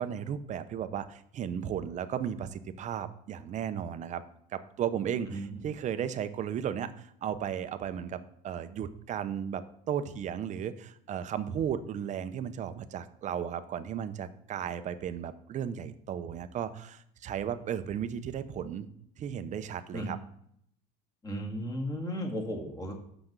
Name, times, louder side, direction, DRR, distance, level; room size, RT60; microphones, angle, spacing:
voice 1, 0.0-4.2 4.5-18.9 19.2-20.2, right 9 dB, 35° right, 12 dB, 0.7 m, -35 dB
voice 2, 21.2-22.9, equal, 20° left, 2 dB, 1.9 m, -35 dB
5.9 x 5.9 x 6.6 m, 0.71 s
supercardioid pair, 125°, 21 cm